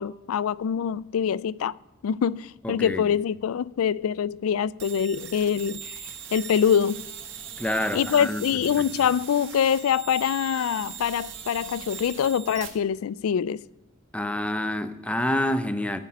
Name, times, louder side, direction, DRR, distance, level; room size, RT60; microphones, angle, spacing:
voice 1, 0.0-1.8 2.0-5.9 6.3-7.0 7.9-13.6, left 8 dB, 90° left, 0.3 m, -24 dB
voice 2, 2.6-3.0 7.6-8.5 8.8-8.9 14.1-16.0, left 1 dB, 5° left, 0.6 m, -27 dB
sound 1, 4.8-12.7, right 8 dB, 60° right, 1.5 m, -40 dB
13.5 x 5.2 x 9.2 m
head